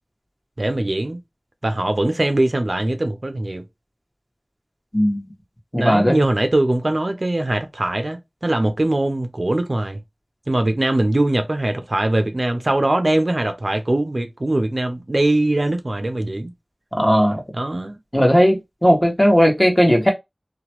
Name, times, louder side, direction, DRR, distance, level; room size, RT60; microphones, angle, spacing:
voice 1, 0.6-1.2 1.6-3.6 5.8-10.0 10.5-16.5 17.5-18.0, right 1 dB, 65° right, 0.5 m, -21 dB
voice 2, 4.9-5.2 5.7-6.2 17.0-17.4 18.1-20.1, equal, 10° left, 1.2 m, -16 dB
2.8 x 2.2 x 2.9 m
wide cardioid pair, 40°, 0 cm